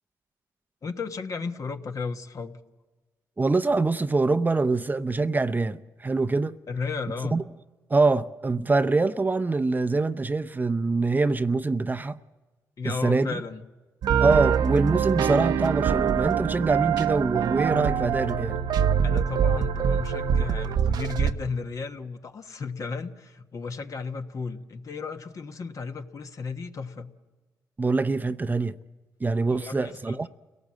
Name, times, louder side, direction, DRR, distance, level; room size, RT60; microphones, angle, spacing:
voice 1, 0.8-2.6 6.7-7.3 12.8-13.7 19.0-27.1 29.5-30.3, left 4 dB, 50° left, 1.4 m, -34 dB
voice 2, 3.4-6.6 7.3-7.4 7.9-12.2 12.8-13.4 14.2-18.6 27.8-28.8 29.2-30.3, right 3 dB, 25° right, 0.7 m, -24 dB
sound 1, 14.0-21.3, right 8 dB, 75° right, 0.8 m, -24 dB
29.5 x 18.0 x 7.6 m
cardioid pair, 70°, 7 cm